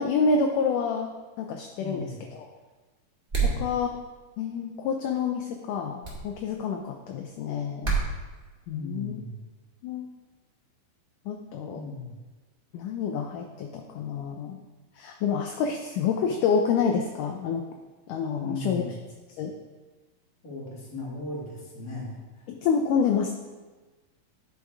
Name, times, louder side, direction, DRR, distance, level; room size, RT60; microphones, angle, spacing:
voice 1, 0.0-2.5 3.4-3.9 4.4-7.9 8.7-9.2 9.8-10.1 11.3-11.8 12.7-14.6 15.0-17.6 18.1-18.8 19.4-19.5 22.5-23.3, left 5 dB, 75° left, 3 dB, 2.0 m, -28 dB
voice 2, 1.8-2.2 3.4-3.7 8.7-9.4 11.7-12.2 18.3-18.9 20.4-22.4, left 2 dB, 25° left, -5 dB, 2.4 m, -37 dB
sound 1, 3.3-3.6 6.0-6.2 7.8-8.1, right 5 dB, 25° right, 1.3 m, -25 dB
9.9 x 6.8 x 4.7 m, 1.3 s
omnidirectional pair, 4.3 m